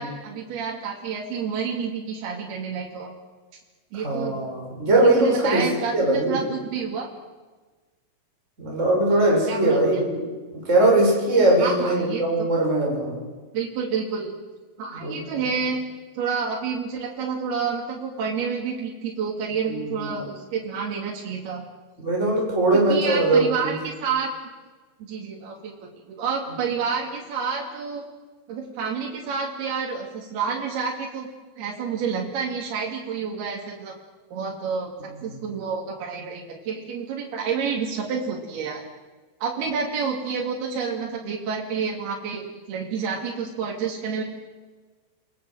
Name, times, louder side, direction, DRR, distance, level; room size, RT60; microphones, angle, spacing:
voice 1, 0.0-3.1 3.9-4.4 4.9-7.1 9.1-9.8 11.6-12.5 13.5-14.3 14.8-15.8 16.1-21.6 22.9-24.3 25.0-28.0 28.5-31.3 31.6-33.9 34.3-38.8 39.4-44.2, right 6 dB, 80° right, -2 dB, 4.6 m, -29 dB
voice 2, 3.9-5.7 5.9-6.4 8.6-10.3 10.5-13.2 15.0-15.5 19.7-20.0 22.0-23.8 35.3-35.4, right 2 dB, 15° right, -3 dB, 6.8 m, -21 dB
29.0 x 21.5 x 7.9 m, 1.3 s
omnidirectional pair, 4.4 m